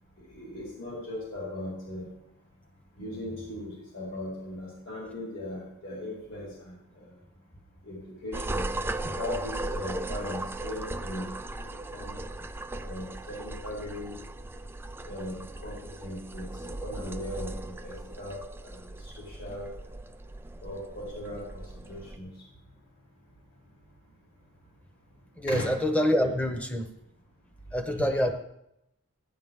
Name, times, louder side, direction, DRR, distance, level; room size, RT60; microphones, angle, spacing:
voice 1, 0.2-2.1 3.0-6.7 7.0-7.1 7.8-8.7 9.0-11.3 11.7-12.1 12.8-14.1 15.0-19.7 20.6-22.3 25.5-25.7 27.9-28.0, left 1 dB, 60° left, -6 dB, 4.8 m, -39 dB
sound 1, 8.3-22.2, right 2 dB, 10° right, 0.4 m, -37 dB
voice 2, 25.4-26.9 27.7-28.3, equal, 5° left, 5 dB, 1.1 m, -26 dB
17.0 x 10.0 x 3.7 m, 0.83 s
head